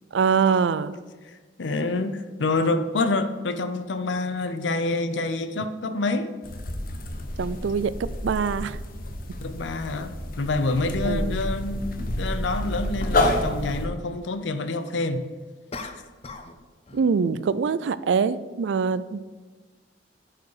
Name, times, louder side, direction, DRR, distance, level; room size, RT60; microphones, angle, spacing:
voice 1, 0.1-0.9 7.4-8.8 11.0-11.4 12.0-12.1 16.9-19.2, right 5 dB, 80° right, 0.4 m, -24 dB
voice 2, 1.6-6.3 9.4-15.2 15.8-15.9, left 2 dB, 85° left, 0.6 m, -27 dB
sound 1, 6.4-13.9, left 1 dB, 50° left, 1.0 m, -29 dB
sound 2, 15.7-16.6 16.9-17.2, left 3 dB, 35° left, 0.6 m, -39 dB
10.5 x 4.8 x 4.8 m
head